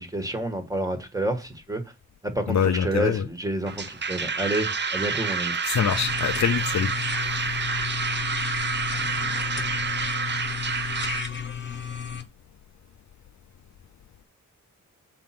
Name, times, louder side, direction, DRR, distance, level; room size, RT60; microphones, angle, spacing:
voice 1, 0.0-1.8 2.2-5.5, right 1 dB, 10° right, 1.5 m, -29 dB
voice 2, 2.5-3.3 5.6-6.9, left 8 dB, 65° left, 0.6 m, -24 dB
sound 1, 3.7-11.3, right 5 dB, 35° right, 0.6 m, -28 dB
sound 2, 5.9-12.2, left 7 dB, 35° left, 1.0 m, -33 dB
7.5 x 4.3 x 5.9 m
wide cardioid pair, 145°, 31 cm